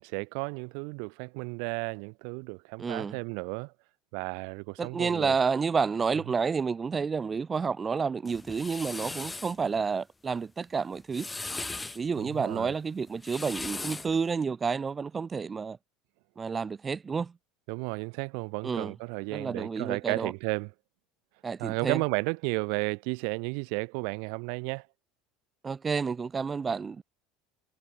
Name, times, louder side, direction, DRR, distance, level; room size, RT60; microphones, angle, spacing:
voice 1, 0.0-3.7 4.1-5.3 12.2-12.7 17.7-20.7 21.6-24.9, right 40 dB or more, 70° right, 1.7 m, -33 dB
voice 2, 2.8-3.2 4.8-11.3 11.9-15.8 16.4-17.3 18.6-18.9 19.3-20.3 21.4-22.0 25.6-27.0, right 5 dB, 20° right, 0.5 m, -30 dB
sound 1, 8.2-9.6 10.9-12.0 13.1-14.2, left 3 dB, 10° left, 1.5 m, -38 dB
supercardioid pair, 130°, 0 cm